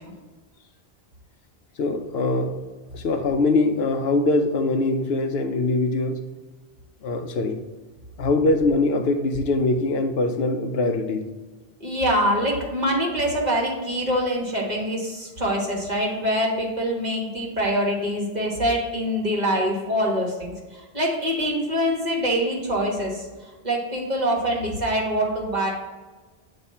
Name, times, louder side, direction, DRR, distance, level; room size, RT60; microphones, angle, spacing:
voice 1, 1.8-2.6 2.9-6.2 7.0-7.6 8.2-11.3, left 2 dB, 80° left, 7 dB, 0.9 m, -22 dB
voice 2, 11.8-25.7, equal, 45° right, -2 dB, 1.4 m, -24 dB
8.8 x 3.2 x 4.2 m, 1.3 s
omnidirectional pair, 1.0 m